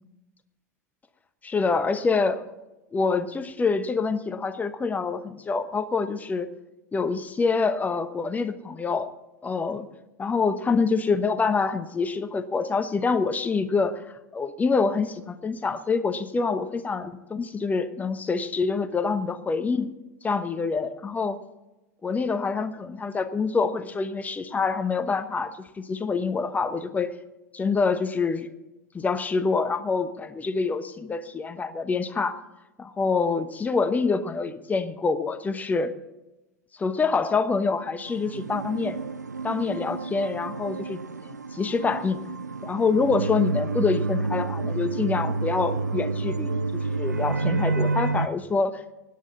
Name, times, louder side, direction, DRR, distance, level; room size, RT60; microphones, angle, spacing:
voice 1, 1.4-2.5 2.9-6.5 6.9-9.1 9.4-9.9 10.2-14.0 14.3-19.9 20.2-21.4 22.0-27.1 27.5-28.5 28.9-32.4 32.8-35.9 36.7-39.0 39.4-42.2 42.6-48.8, left 4 dB, 15° left, 10 dB, 1.1 m, -26 dB
sound 1, 38.1-48.3, right 3 dB, 85° right, 0.4 m, -29 dB
24.0 x 9.6 x 4.1 m, 1.0 s
figure-of-eight pair, 85°, 9 cm